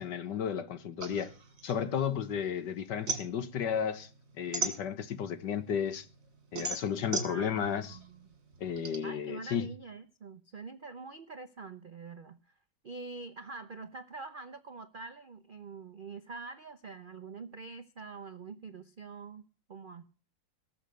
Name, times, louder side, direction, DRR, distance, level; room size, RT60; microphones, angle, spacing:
voice 1, 0.0-1.3 1.6-4.1 4.4-6.1 6.5-8.0 8.6-9.7, left 8 dB, 70° left, 1.7 m, -33 dB
sound 1, 1.0-2.5 2.8-5.4 5.8-9.0, right 4 dB, 45° right, 2.6 m, -37 dB
voice 2, 7.0-8.3 9.0-12.4 12.8-20.0, right 4 dB, 60° right, 0.5 m, -45 dB
18.5 x 7.2 x 7.7 m
omnidirectional pair, 2.0 m